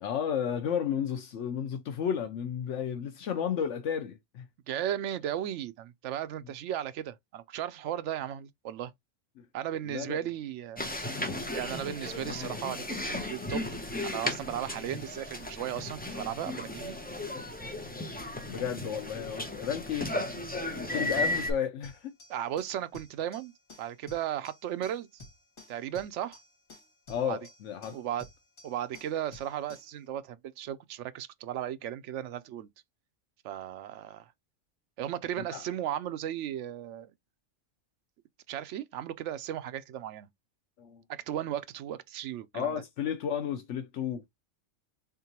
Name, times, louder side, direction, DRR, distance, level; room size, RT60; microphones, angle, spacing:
voice 1, 0.0-4.5 9.4-9.5 9.8-10.2 18.4-22.2 27.1-28.0 35.5-35.6 40.8-41.0 42.5-44.3, left 8 dB, 75° left, 1.0 m, -33 dB
voice 2, 4.7-8.9 9.5-10.9 11.5-13.6 14.0-17.0 22.3-23.5 23.8-25.2 25.7-26.4 27.2-27.4 27.9-28.3 28.6-32.7 33.4-34.3 35.0-37.1 38.5-40.3 41.1-42.7, right 11 dB, 75° right, 0.9 m, -35 dB
sound 1, 10.8-21.5, left 1 dB, 10° left, 0.5 m, -35 dB
sound 2, 21.8-30.0, left 2 dB, 45° left, 2.3 m, -53 dB
3.7 x 3.7 x 2.8 m
omnidirectional pair, 1.3 m